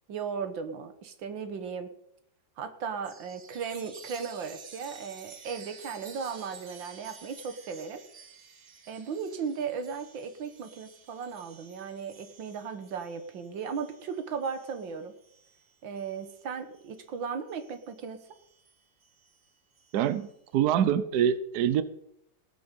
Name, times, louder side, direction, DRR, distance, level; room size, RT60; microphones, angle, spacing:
voice 1, 0.1-1.9 2.6-8.0 8.9-15.1 15.8-18.2, right 6 dB, 85° right, 9 dB, 2.0 m, -36 dB
Chime, 3.0-17.0 17.5-20.3, right 5 dB, 40° right, 1.6 m, -52 dB
voice 2, 19.9-21.8, right 9 dB, 65° right, 14 dB, 1.1 m, -25 dB
19.0 x 7.8 x 5.3 m, 0.76 s
omnidirectional pair, 2.0 m